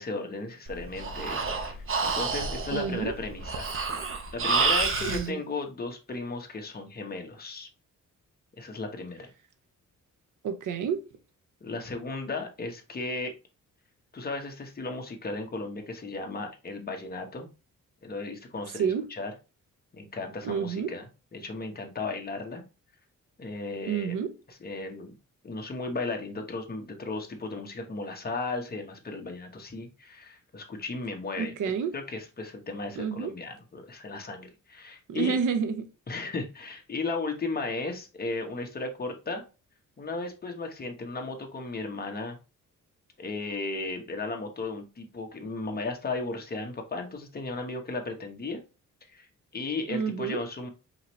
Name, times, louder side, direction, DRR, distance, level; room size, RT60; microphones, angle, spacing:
voice 1, 0.0-3.7 4.3-7.7 8.6-9.3 11.6-13.3 14.1-17.5 18.0-19.3 19.9-21.1 21.3-22.6 23.4-24.2 24.6-25.1 25.4-31.5 31.9-35.4 36.1-39.4 40.0-42.4 43.2-48.6 49.1-49.3 49.5-50.7, left 3 dB, 30° left, 1.1 m, -35 dB
Breathing, 0.7-5.3, right 4 dB, 45° right, 0.8 m, -29 dB
voice 2, 2.7-3.1 5.1-5.4 10.4-11.0 18.7-19.0 20.4-20.9 23.9-24.3 31.4-31.9 33.0-33.3 35.1-35.9 49.9-50.4, right 6 dB, 80° right, 0.8 m, -29 dB
5.1 x 3.0 x 3.0 m
cardioid pair, 120°, 30 cm